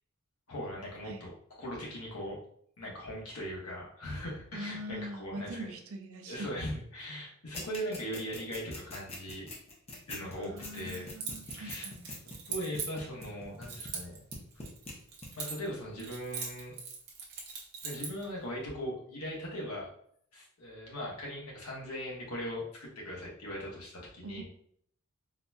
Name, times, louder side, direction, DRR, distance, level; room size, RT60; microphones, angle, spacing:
voice 1, 0.5-1.3 1.6-2.4 2.8-5.6 6.3-9.5 10.1-11.1 11.5-11.8 12.5-14.2 15.4-16.7 17.8-19.9 20.3-24.4, equal, 90° left, -3 dB, 1.2 m, -39 dB
voice 2, 4.5-6.6 10.3-12.0 24.2-24.4, equal, 75° right, 5 dB, 0.5 m, -42 dB
sound 1, 7.5-14.0 14.3-14.9 15.2-15.3, left 2 dB, 30° left, 0.8 m, -42 dB
Keys jangling, 10.6-13.3 13.7-15.7 16.0-18.2, right 6 dB, 50° right, 0.8 m, -41 dB
4.0 x 2.7 x 2.2 m, 0.65 s
head